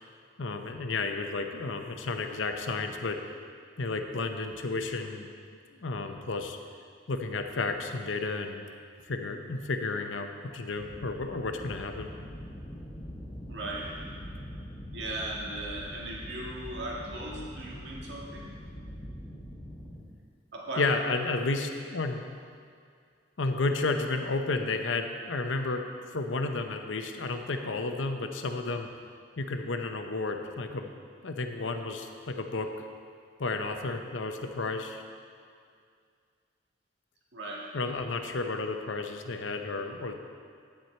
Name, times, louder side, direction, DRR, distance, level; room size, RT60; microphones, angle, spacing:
voice 1, 0.4-3.2 3.8-5.3 5.8-6.6 7.1-8.6 9.1-12.1 20.8-22.2 23.4-25.8 26.1-28.9 29.4-30.9 31.2-32.7 33.4-35.0 37.7-40.1, left 3 dB, 80° left, 5 dB, 0.8 m, -32 dB
sound 1, 10.8-20.0, equal, 25° left, 2.3 m, -43 dB
voice 2, 13.5-13.9 14.9-18.6 20.5-20.9 37.3-37.7, right 1 dB, 60° right, -3 dB, 1.8 m, -37 dB
9.5 x 8.9 x 4.4 m, 2.2 s
head